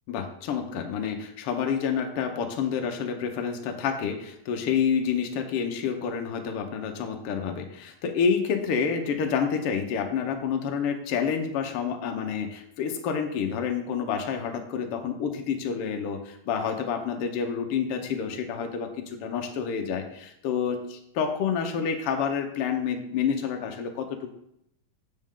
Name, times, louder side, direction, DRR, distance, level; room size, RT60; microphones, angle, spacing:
voice 1, 0.1-24.3, left 7 dB, 85° left, 4 dB, 1.2 m, -28 dB
7.8 x 7.5 x 3.7 m, 0.76 s
omnidirectional pair, 3.7 m